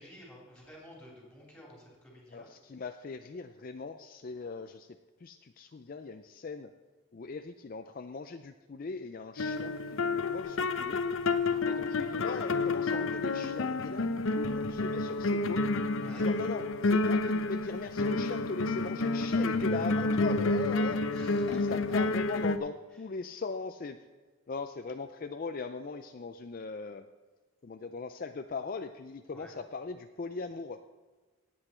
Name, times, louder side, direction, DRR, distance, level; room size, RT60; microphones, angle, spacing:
voice 1, 0.0-2.5 11.4-11.9 16.0-16.3 21.1-22.0 29.3-29.5, left 1 dB, 5° left, -4 dB, 3.5 m, -51 dB
voice 2, 2.3-4.9 5.2-6.7 7.1-11.0 11.6-15.6 16.2-21.1 21.7-24.0 24.5-27.1 27.6-30.8, left 4 dB, 40° left, 8 dB, 0.4 m, -39 dB
sound 1, 9.4-22.6, left 3 dB, 75° left, 0.7 m, -29 dB
17.5 x 8.2 x 4.4 m, 1.3 s
head